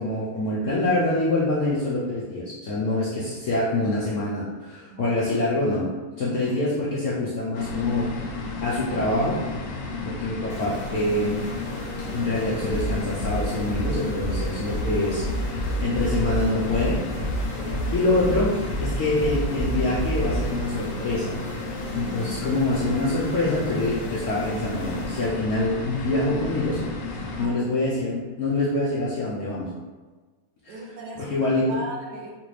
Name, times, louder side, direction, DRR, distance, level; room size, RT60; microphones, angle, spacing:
voice 1, 0.0-8.1 8.6-9.4 10.1-11.4 12.1-17.0 17.9-21.4 21.9-26.8 27.1-29.7 30.6-30.7 31.2-31.8, left 2 dB, 65° left, -7 dB, 0.8 m, -25 dB
voice 2, 6.3-6.6 17.5-17.9 22.0-22.3 27.3-27.6 30.7-32.3, right 2 dB, 75° right, -1 dB, 1.1 m, -39 dB
sound 1, 7.5-27.5, left 3 dB, 85° left, 1.2 m, -33 dB
sound 2, 10.5-25.3, left 1 dB, 40° left, 0.9 m, -41 dB
sound 3, 12.7-20.5, right 1 dB, 30° right, 0.8 m, -28 dB
3.2 x 2.6 x 3.1 m, 1.3 s
omnidirectional pair, 1.8 m